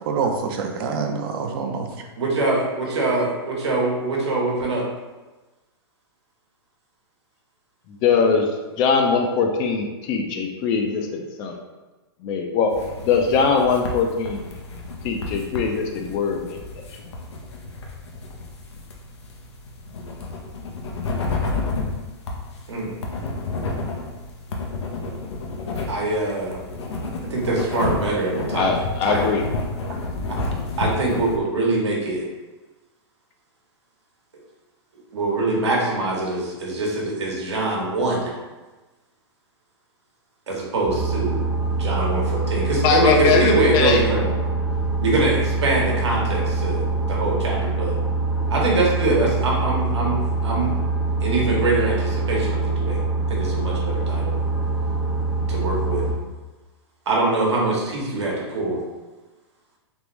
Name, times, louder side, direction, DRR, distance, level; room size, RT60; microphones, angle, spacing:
voice 1, 0.1-2.1 2.9-3.2, right 5 dB, 55° right, 3 dB, 0.5 m, -26 dB
voice 2, 2.2-4.9 22.7-22.9 25.9-26.6 27.3-28.7 29.1-29.4 30.8-32.2 35.1-38.3 40.5-41.4 41.7-44.3 45.0-47.9 48.5-50.7 51.2-53.0 53.3-54.3 55.5-56.0 57.1-58.8, right 2 dB, 85° right, -3 dB, 1.1 m, -23 dB
voice 3, 8.0-8.5 8.8-11.6 12.2-12.7 13.0-14.4 15.0-16.6 28.5-29.4 42.8-44.0, left 5 dB, 35° left, 3 dB, 0.4 m, -21 dB
sound 1, 12.7-31.4, left 3 dB, 85° left, 0.7 m, -30 dB
sound 2, 40.9-56.1, right 3 dB, 10° right, 0.6 m, -24 dB
3.5 x 2.5 x 3.0 m, 1.2 s
hypercardioid pair, 130°, 14 cm